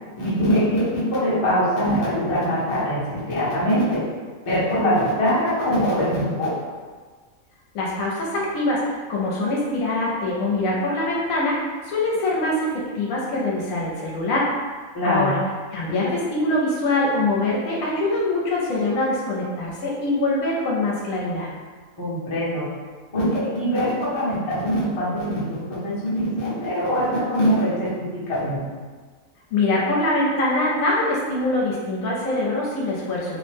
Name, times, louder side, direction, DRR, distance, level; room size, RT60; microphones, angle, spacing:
voice 1, 0.2-4.1 4.4-6.5 14.9-15.3 22.0-22.7 23.1-28.6, equal, 25° left, -9 dB, 0.7 m, -23 dB
voice 2, 7.7-14.5 15.0-15.4 15.7-21.5 29.5-33.4, left 2 dB, 80° left, -4 dB, 1.0 m, -23 dB
2.8 x 2.1 x 3.2 m, 1.5 s
omnidirectional pair, 1.5 m